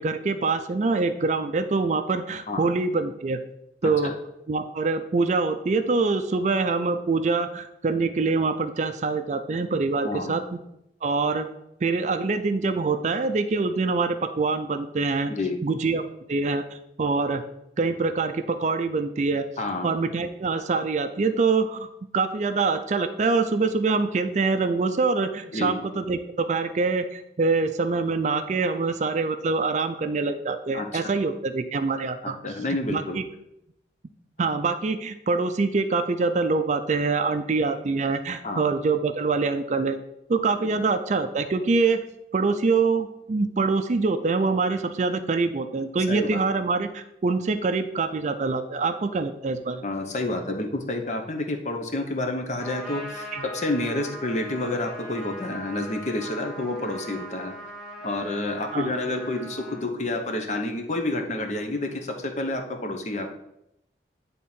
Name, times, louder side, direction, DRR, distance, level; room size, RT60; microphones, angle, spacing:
voice 1, 0.0-3.4 3.8-4.1 4.5-10.6 11.0-11.5 11.8-15.3 15.6-16.0 16.3-17.4 17.8-19.5 19.8-21.9 22.1-32.4 32.9-33.2 34.4-40.0 40.3-42.0 42.3-49.8 53.3-53.4 58.7-58.9, right 4 dB, 40° right, 9 dB, 0.4 m, -25 dB
voice 2, 10.0-10.4 15.3-15.6 19.6-19.9 25.5-25.8 30.7-31.0 32.2-33.2 38.4-38.6 46.1-46.4 49.8-57.5 58.0-63.3, left 2 dB, 40° left, 4 dB, 0.8 m, -29 dB
Trumpet, 52.6-59.8, equal, ahead, 1.3 m, -40 dB
8.5 x 3.6 x 4.3 m, 0.83 s
head